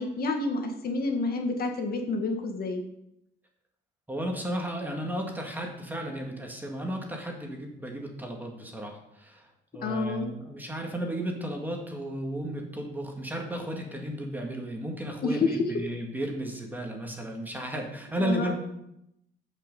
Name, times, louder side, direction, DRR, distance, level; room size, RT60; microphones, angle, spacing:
voice 1, 0.0-2.8 9.8-10.3 15.2-15.7 18.2-18.5, left 3 dB, 50° left, 3 dB, 1.7 m, -29 dB
voice 2, 4.1-9.5 9.7-18.5, right 1 dB, 10° right, 1 dB, 1.9 m, -34 dB
14.5 x 5.8 x 5.4 m, 0.81 s
cardioid pair, 130°, 19 cm